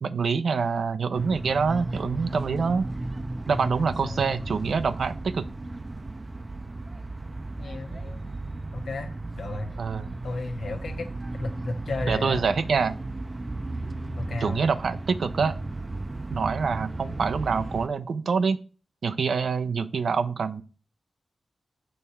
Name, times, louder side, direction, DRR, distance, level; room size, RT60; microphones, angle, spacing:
voice 1, 0.0-2.9 3.5-5.5 9.8-10.1 12.1-13.0 14.4-15.6 16.3-18.6 19.0-20.6, right 5 dB, 80° right, 12 dB, 0.5 m, -26 dB
sound 1, 1.1-17.9, right 2 dB, 35° right, 0.5 m, -35 dB
voice 2, 3.5-4.4 7.6-8.3 8.7-9.1 9.4-9.7 10.2-12.4 14.2-14.6, left 2 dB, 85° left, 4 dB, 1.2 m, -34 dB
6.5 x 3.3 x 5.6 m, 0.36 s
cardioid pair, 55°, 0 cm